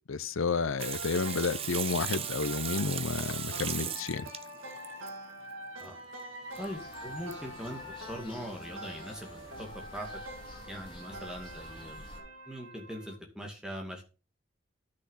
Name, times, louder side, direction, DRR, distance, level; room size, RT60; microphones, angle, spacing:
voice 1, 0.1-4.3, left 4 dB, 90° left, 0.6 m, -31 dB
Water tap faucet / Sink (filling or washing), 0.8-5.1 6.6-6.7 6.9-7.0 7.3-7.4, right 9 dB, 30° right, 0.5 m, -37 dB
sound 1, 0.8-13.2, right 1 dB, 85° right, 2.1 m, -45 dB
sound 2, 6.5-12.2, left 1 dB, 25° left, 3.4 m, -49 dB
voice 2, 6.6-7.8 8.1-10.2 10.7-12.1 12.5-14.0, equal, 5° right, 2.3 m, -41 dB
10.5 x 6.5 x 5.6 m
head